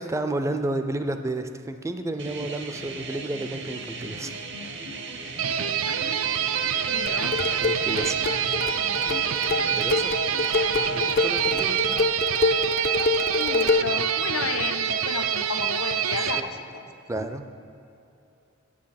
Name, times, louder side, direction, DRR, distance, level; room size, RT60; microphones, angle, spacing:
voice 1, 0.0-4.4 7.6-8.2 9.6-10.1 10.9-11.8 16.3-16.5 17.1-17.4, right 2 dB, 15° right, 8 dB, 0.4 m, -31 dB
sound 1, 2.2-12.0, right 3 dB, 60° right, 0.9 m, -37 dB
sound 2, 5.4-16.4, right 9 dB, 75° right, 0.4 m, -26 dB
voice 2, 5.9-6.2 6.6-7.4 13.3-16.9, left 5 dB, 90° left, 8 dB, 0.6 m, -33 dB
sound 3, 7.1-14.0, left 3 dB, 50° left, 0.4 m, -26 dB
8.6 x 7.7 x 5.8 m, 2.7 s
head